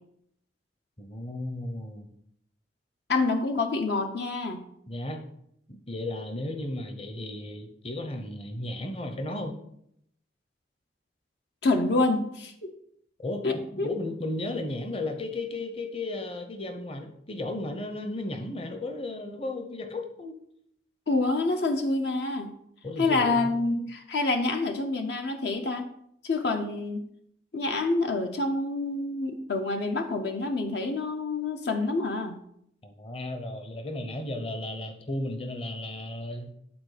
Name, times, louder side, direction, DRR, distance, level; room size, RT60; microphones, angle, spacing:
voice 1, 1.0-2.1 4.9-5.2 5.7-9.5 13.2-13.5 13.7-20.3 22.8-23.5 32.8-36.5, left 2 dB, 30° left, 5 dB, 0.8 m, -34 dB
voice 2, 3.1-4.6 11.6-12.7 13.4-13.9 21.1-22.5 23.0-25.9 26.2-27.0 27.5-32.4, left 3 dB, 65° left, 5 dB, 0.6 m, -27 dB
8.7 x 4.1 x 4.9 m, 0.72 s
head